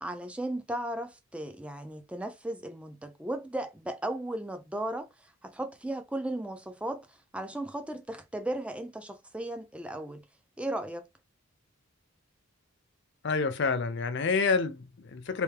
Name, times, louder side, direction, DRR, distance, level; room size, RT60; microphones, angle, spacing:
voice 1, 0.0-10.2 10.6-11.0, right 1 dB, 5° right, 0.4 m, -36 dB
voice 2, 13.2-15.4, left 4 dB, 50° left, 0.5 m, -28 dB
3.4 x 3.1 x 3.3 m
head